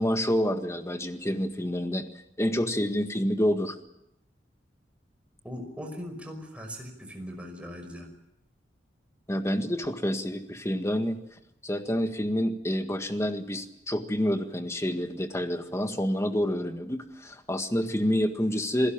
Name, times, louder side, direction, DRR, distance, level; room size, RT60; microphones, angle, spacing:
voice 1, 0.0-2.0 2.4-3.8 9.3-11.2 11.6-18.9, equal, 15° left, 7 dB, 1.8 m, -28 dB
voice 2, 5.4-8.1, equal, 5° right, 4 dB, 5.4 m, -39 dB
27.5 x 16.5 x 8.9 m, 0.82 s
head